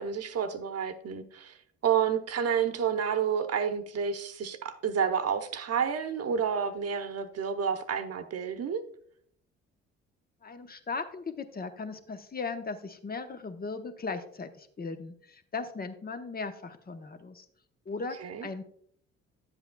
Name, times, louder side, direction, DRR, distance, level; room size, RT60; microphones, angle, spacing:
voice 1, 0.0-1.6 1.8-8.8 18.2-18.5, right 7 dB, 50° right, 8 dB, 0.9 m, -30 dB
voice 2, 10.4-17.4 17.9-18.6, left 4 dB, 30° left, 8 dB, 0.9 m, -38 dB
10.5 x 7.8 x 2.3 m, 0.63 s
hypercardioid pair, 50°, 31 cm